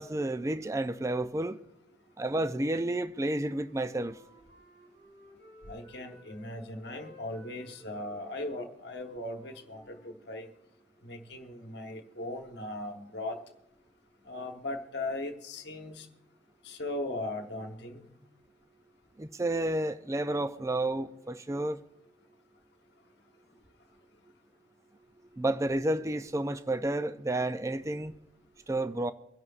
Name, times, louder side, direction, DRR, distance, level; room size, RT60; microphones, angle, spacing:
voice 1, 0.0-1.6 2.2-4.1 19.2-21.8 25.3-28.1 28.7-29.1, right 1 dB, 15° right, 0.3 m, -31 dB
Wind instrument woodwind instrument, 3.2-6.5 6.8-10.6, equal, 40° right, 5.6 m, -57 dB
voice 2, 5.7-10.5 11.0-13.4 14.3-16.1 16.6-18.1, left 2 dB, 55° left, 1.2 m, -38 dB
24.0 x 11.0 x 2.4 m
head